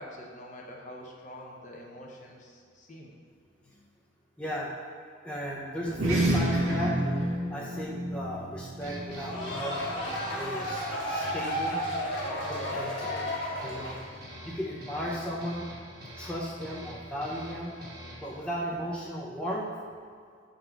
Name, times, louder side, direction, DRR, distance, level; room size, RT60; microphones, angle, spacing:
voice 1, 0.0-3.1, equal, 35° left, -1 dB, 0.7 m, -45 dB
voice 2, 4.4-4.7 5.2-6.9 7.5-9.8 10.3-14.0 14.4-15.6 16.2-17.7 18.0-19.7, equal, 5° left, -5 dB, 0.6 m, -36 dB
sound 1, 5.9-10.7, right 1 dB, 85° right, 1.3 m, -30 dB
sound 2, 8.8-18.4, equal, 45° right, 1.3 m, -44 dB
sound 3, 9.1-14.1, equal, 75° left, 1.3 m, -33 dB
6.5 x 4.0 x 4.5 m, 2.1 s
head